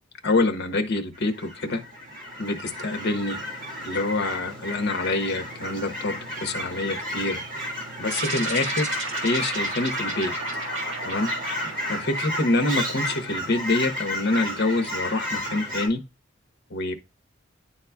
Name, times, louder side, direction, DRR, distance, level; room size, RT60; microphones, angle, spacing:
voice 1, 0.2-1.8 2.4-3.4 3.8-7.4 8.0-8.9 9.2-10.3 11.0-11.3 11.6-16.0 16.7-16.9, left 2 dB, 60° left, 1.0 m, -26 dB
Fowl / Chirp tweet, 1.1-15.9, left 1 dB, 45° right, 2.1 m, -32 dB
sound 1, 8.1-12.8, right 2 dB, 75° right, 1.8 m, -34 dB
10.0 x 4.1 x 2.3 m
head